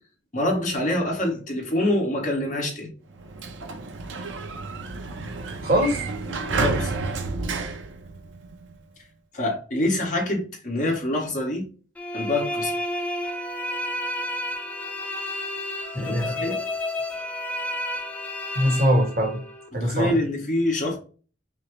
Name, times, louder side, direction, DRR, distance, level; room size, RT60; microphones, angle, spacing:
voice 1, 0.3-2.9 6.3-7.6 9.3-11.6 12.1-12.7 15.9-16.6 18.6-18.8 19.7-21.0, left 1 dB, 40° left, 1.2 m, -26 dB
Sliding door, 3.1-8.8, right 3 dB, 80° right, 0.6 m, -30 dB
voice 2, 5.6-6.0 15.9-16.5 18.5-19.4 19.7-20.2, equal, 50° right, 1.1 m, -22 dB
sound 1, 12.0-19.7, left 1 dB, 10° left, 0.4 m, -31 dB
5.6 x 2.0 x 3.0 m
head